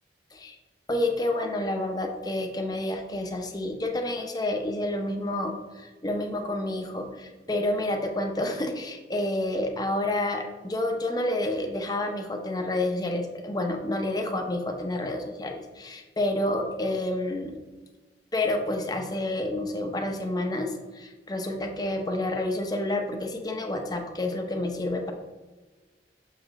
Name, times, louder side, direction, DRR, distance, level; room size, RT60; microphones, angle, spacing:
voice 1, 0.9-17.6 18.3-25.1, left 1 dB, 20° left, 3 dB, 0.7 m, -29 dB
6.7 x 5.1 x 3.6 m, 1.3 s
head